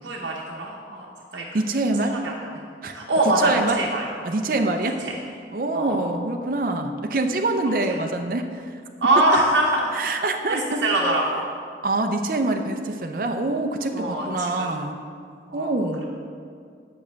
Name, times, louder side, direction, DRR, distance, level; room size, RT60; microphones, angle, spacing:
voice 1, 0.0-1.1 1.3-1.5 2.1-2.6 2.9-4.0 5.0-5.1 5.7-6.0 7.9-8.0 9.0-9.9 10.5-11.4 13.9-14.7 15.5-15.7, right 1 dB, 85° right, -3 dB, 0.8 m, -23 dB
voice 2, 1.5-2.2 2.8-2.9 3.2-3.8 4.2-5.0 5.5-8.7 9.2-9.3 9.9-10.8 11.8-15.0 15.5-16.0, right 2 dB, 50° right, 5 dB, 0.5 m, -25 dB
6.9 x 5.3 x 7.2 m, 2.2 s
head